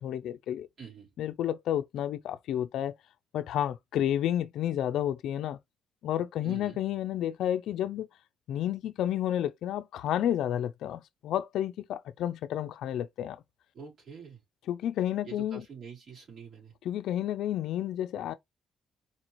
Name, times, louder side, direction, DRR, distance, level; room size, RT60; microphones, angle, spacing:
voice 1, 0.0-0.7 1.2-2.9 3.3-5.6 6.0-8.1 8.5-13.4 14.7-15.6 16.9-18.3, left 11 dB, 80° left, 0.4 m, -31 dB
voice 2, 0.8-1.1 6.4-6.8 13.7-14.4 15.2-16.7, right 6 dB, 60° right, 2.9 m, -46 dB
4.3 x 2.5 x 3.0 m
cardioid pair, 90°, 0 cm